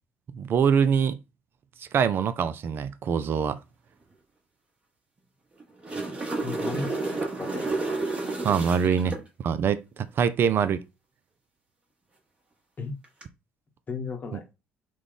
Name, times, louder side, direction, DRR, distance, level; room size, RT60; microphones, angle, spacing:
voice 1, 0.3-1.2 1.8-3.6 8.4-10.8, right 7 dB, 40° right, 0.4 m, -24 dB
sound 1, 5.6-9.2 13.0-13.2, right 3 dB, 20° right, 1.2 m, -30 dB
voice 2, 6.4-7.7 12.8-13.0 13.9-14.4, left 4 dB, 35° left, 0.9 m, -35 dB
3.6 x 2.2 x 3.8 m
figure-of-eight pair, 55°, 6 cm